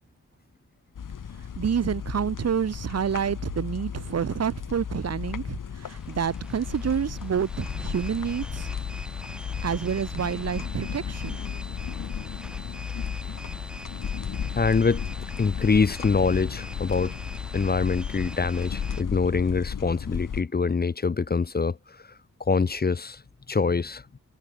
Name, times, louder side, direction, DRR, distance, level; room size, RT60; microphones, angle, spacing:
sound 1, 0.9-20.4, left 7 dB, 75° left, 1.6 m, -34 dB
voice 1, 1.6-8.7 9.6-11.4, right 8 dB, 50° right, 0.6 m, -28 dB
sound 2, 5.8-19.0, equal, 5° right, 6.4 m, -44 dB
voice 2, 14.5-15.0 15.4-17.1 17.5-23.2 23.5-24.1, left 4 dB, 30° left, 0.6 m, -25 dB
wide cardioid pair, 150°, 32 cm